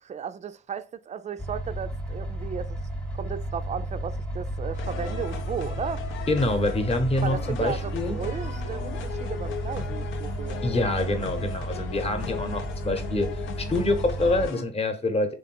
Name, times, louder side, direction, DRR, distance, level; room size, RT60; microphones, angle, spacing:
voice 1, 0.1-2.8 3.1-6.1 7.2-10.6, right 7 dB, 35° right, 0.4 m, -35 dB
sound 1, 1.4-14.5, right 1 dB, 5° left, 0.8 m, -33 dB
sound 2, 4.7-14.6, left 9 dB, 75° left, 0.6 m, -38 dB
voice 2, 6.3-8.2 10.6-15.3, left 2 dB, 30° left, 0.9 m, -26 dB
3.7 x 2.5 x 4.2 m
cardioid pair, 90°, 20 cm